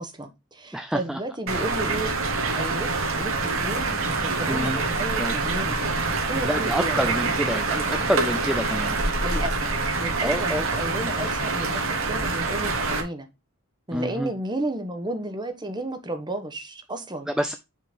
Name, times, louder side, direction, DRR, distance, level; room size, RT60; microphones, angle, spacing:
voice 1, 0.0-2.1 2.5-5.9 6.3-7.1 9.2-9.7 10.0-13.3 13.9-17.3, right 1 dB, 20° right, 1.1 m, -33 dB
voice 2, 0.7-1.2 4.5-4.8 5.2-5.3 6.4-9.0 10.2-10.7 13.9-14.3 17.3-17.5, equal, 5° right, 0.4 m, -27 dB
sound 1, 1.5-13.0, right 3 dB, 70° right, 1.7 m, -26 dB
6.5 x 3.9 x 5.0 m
head